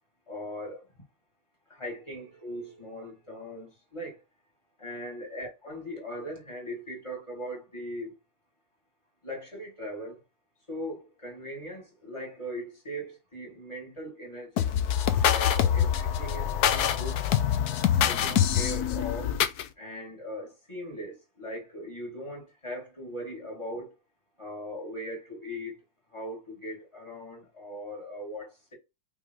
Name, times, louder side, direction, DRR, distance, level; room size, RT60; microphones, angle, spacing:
voice 1, 0.3-0.8 1.7-4.2 4.8-8.1 9.2-10.2 10.7-14.7 15.3-17.3 18.0-19.4 19.8-23.9 24.4-25.8 26.1-28.7, equal, 15° left, 2.4 m, -39 dB
sound 1, 14.6-19.6, left 9 dB, 70° left, 0.9 m, -25 dB
5.6 x 3.7 x 4.7 m
omnidirectional pair, 2.4 m